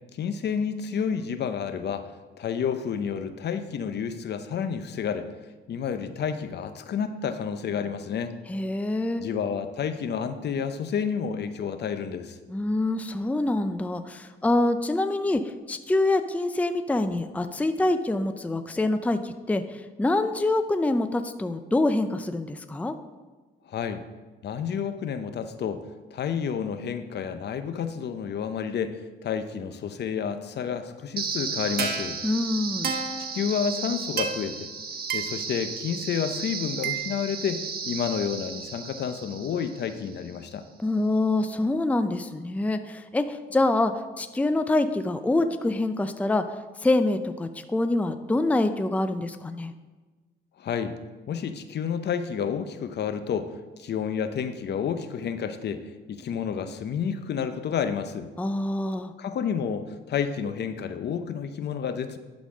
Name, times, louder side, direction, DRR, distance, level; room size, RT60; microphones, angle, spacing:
voice 1, 0.1-2.1 2.4-5.3 5.7-8.4 9.2-12.4 23.7-24.0 24.4-32.2 33.3-34.7 35.1-40.6 50.6-51.0 51.3-58.3 59.2-62.2, left 7 dB, 60° left, 9 dB, 0.7 m, -30 dB
voice 2, 8.5-9.2 12.5-23.0 32.2-32.9 40.8-46.4 46.8-49.7 58.4-59.1, left 2 dB, 5° left, 9 dB, 0.5 m, -25 dB
sound 1, 31.2-40.2, right 5 dB, 50° right, 1.1 m, -33 dB
11.5 x 4.2 x 6.1 m, 1.3 s
cardioid pair, 90°, 20 cm